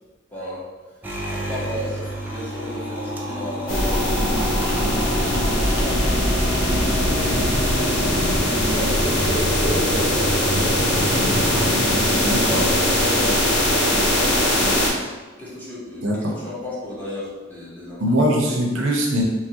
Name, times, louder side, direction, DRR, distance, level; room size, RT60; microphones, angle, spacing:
voice 1, 0.3-0.7 1.3-12.0 12.5-15.0 15.4-18.2, left 1 dB, 10° left, -8 dB, 0.8 m, -34 dB
sound 1, 1.0-12.4, equal, 10° right, 0.3 m, -30 dB
sound 2, 3.7-14.9, left 1 dB, 80° left, 0.7 m, -20 dB
sound 3, 7.2-14.9, right 1 dB, 50° left, 0.9 m, -35 dB
voice 2, 12.1-12.6 16.0-16.3 18.0-19.2, equal, 70° right, -1 dB, 0.5 m, -21 dB
2.9 x 2.3 x 2.8 m, 1.3 s
head